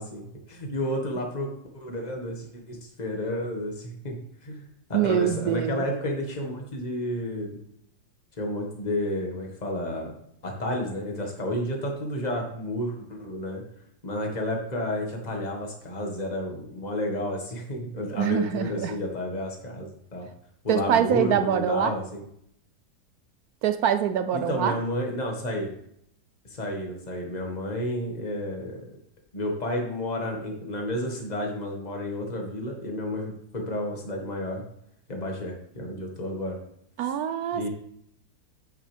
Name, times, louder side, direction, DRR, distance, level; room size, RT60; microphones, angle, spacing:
voice 1, 0.0-1.5 1.7-4.2 4.4-4.6 4.9-7.6 8.4-10.1 10.4-13.6 14.0-20.3 20.6-22.3 24.3-25.7 26.4-28.8 29.3-34.6 35.1-36.6 37.0-37.1 37.5-37.7, left 1 dB, 25° left, 1 dB, 1.7 m, -31 dB
voice 2, 4.9-5.8 18.1-18.9 20.7-21.9 23.6-24.8 37.0-37.7, right 9 dB, 75° right, 10 dB, 0.9 m, -24 dB
8.7 x 6.9 x 3.5 m, 0.72 s
omnidirectional pair, 2.0 m